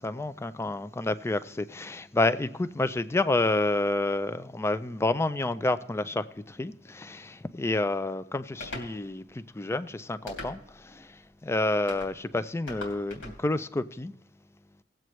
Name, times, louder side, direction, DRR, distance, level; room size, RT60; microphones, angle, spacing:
voice 1, 0.0-14.1, left 2 dB, 15° left, 0.4 m, -29 dB
sound 1, 8.6-8.9 10.3-10.8 11.9-12.1 12.7-13.4, left 2 dB, 90° left, 2.9 m, -39 dB
18.5 x 7.7 x 3.1 m
head